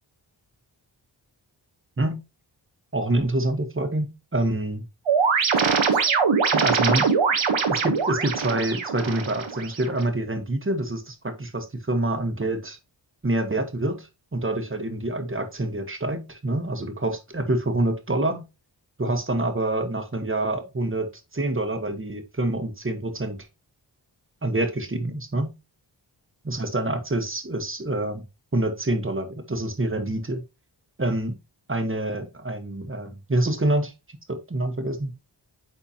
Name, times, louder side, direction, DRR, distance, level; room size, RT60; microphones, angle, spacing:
voice 1, 2.9-4.8 6.5-7.1 7.7-12.8 13.2-18.5 19.0-23.4 24.4-25.5 26.4-28.2 28.5-30.4 31.0-31.4 31.7-33.9 34.3-35.1, right 1 dB, 25° right, 7 dB, 1.3 m, -26 dB
sound 1, 5.1-10.0, right 5 dB, 85° right, 1.2 m, -22 dB
8.5 x 4.4 x 2.9 m, 0.26 s
wide cardioid pair, 75°, 45 cm